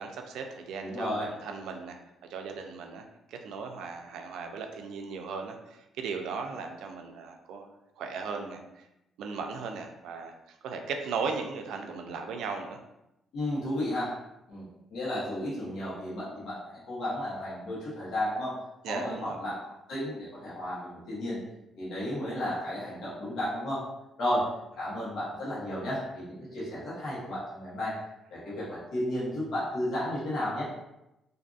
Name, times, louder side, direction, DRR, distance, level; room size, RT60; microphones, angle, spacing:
voice 1, 0.0-2.0 2.3-7.7 8.0-8.8 9.2-10.3 10.6-12.8 18.8-19.4, right 5 dB, 85° right, 4 dB, 0.3 m, -37 dB
voice 2, 0.8-1.3 13.3-14.1 14.5-14.7 14.9-18.5 18.9-19.6 19.9-21.4 21.8-23.8 24.2-24.5 24.8-27.9 28.3-30.6, left 1 dB, 70° left, -8 dB, 1.0 m, -33 dB
2.6 x 2.5 x 2.4 m, 0.89 s
cardioid pair, 90°, 0 cm